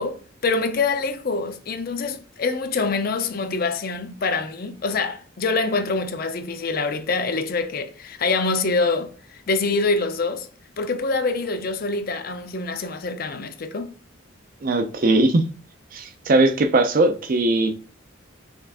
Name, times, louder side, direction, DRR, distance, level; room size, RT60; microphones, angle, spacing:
voice 1, 0.0-10.5 10.8-13.9, left 3 dB, 45° left, 0.5 m, -25 dB
voice 2, 14.6-15.4 15.9-17.7, right 2 dB, 45° right, 0.4 m, -19 dB
5.4 x 2.5 x 3.5 m
head